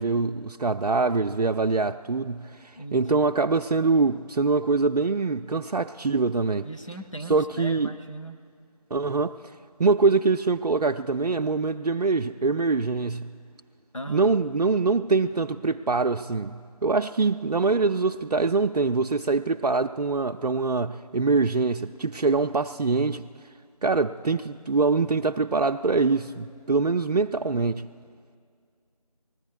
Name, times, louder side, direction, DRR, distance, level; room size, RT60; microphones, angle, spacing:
voice 1, 0.0-6.7 7.3-7.9 8.9-9.5 9.8-13.4 14.1-23.3 23.8-27.9, right 4 dB, 80° right, 0.4 m, -24 dB
voice 2, 2.8-3.1 6.6-8.4 13.9-14.4, right 1 dB, 55° left, 0.9 m, -37 dB
19.5 x 14.0 x 4.8 m
figure-of-eight pair, 180°, 20 cm